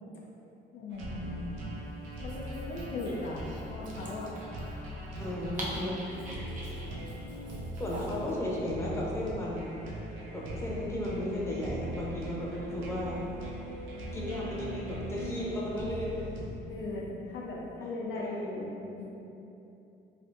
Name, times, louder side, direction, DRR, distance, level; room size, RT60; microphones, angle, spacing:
voice 1, 0.7-1.4 2.2-3.4 3.7-4.4 16.7-18.7 19.0-19.1, left 2 dB, 75° left, -4 dB, 0.5 m, -38 dB
sound 1, 0.9-16.5, right 1 dB, 85° right, 0.5 m, -40 dB
Dog, 2.1-8.4, right 1 dB, 40° right, 0.6 m, -45 dB
voice 2, 5.2-6.0 7.8-9.7 10.3-13.2 14.1-16.6 18.1-18.6, left 1 dB, 15° left, -5 dB, 0.6 m, -35 dB
3.2 x 2.6 x 2.5 m, 2.9 s
cardioid pair, 90°, 20 cm